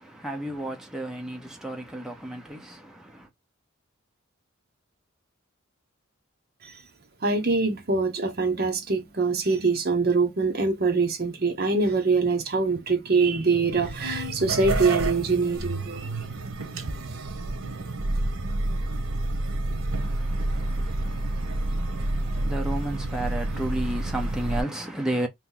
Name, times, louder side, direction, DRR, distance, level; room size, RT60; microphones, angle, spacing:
voice 1, 0.0-3.3 19.9-25.3, right 1 dB, 5° right, 0.6 m, -33 dB
voice 2, 7.2-16.3 17.0-17.6, right 4 dB, 45° right, 0.8 m, -24 dB
sound 1, 13.7-24.6, right 2 dB, 85° right, 0.9 m, -29 dB
2.9 x 2.6 x 3.8 m
head